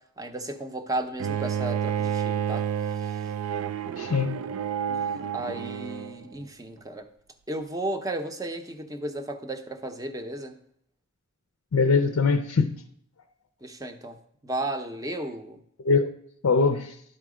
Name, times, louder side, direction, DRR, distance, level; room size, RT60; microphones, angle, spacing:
voice 1, 0.2-2.7 3.0-3.2 4.9-5.0 5.3-7.1 7.5-10.6 13.6-14.2 14.4-15.6, right 1 dB, 15° right, 6 dB, 0.6 m, -34 dB
Bowed string instrument, 1.2-6.2, right 8 dB, 65° right, 0.3 m, -30 dB
voice 2, 4.0-4.4 11.7-12.8 15.8-16.1 16.4-17.0, left 4 dB, 70° left, 7 dB, 0.5 m, -22 dB
11.5 x 4.5 x 4.9 m, 0.68 s
head